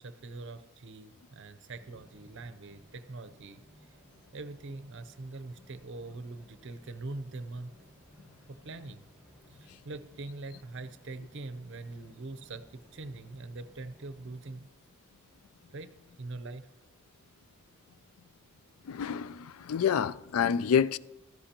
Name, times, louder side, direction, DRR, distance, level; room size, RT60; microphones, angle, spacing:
voice 1, 0.0-3.6 4.3-7.7 8.5-9.0 9.5-14.7 15.7-16.7, right 2 dB, 60° right, 0.7 m, -43 dB
sound 1, 1.7-14.5, equal, 5° right, 4.5 m, -59 dB
voice 2, 18.9-21.0, left 7 dB, 80° left, 0.4 m, -28 dB
15.0 x 14.0 x 2.9 m
head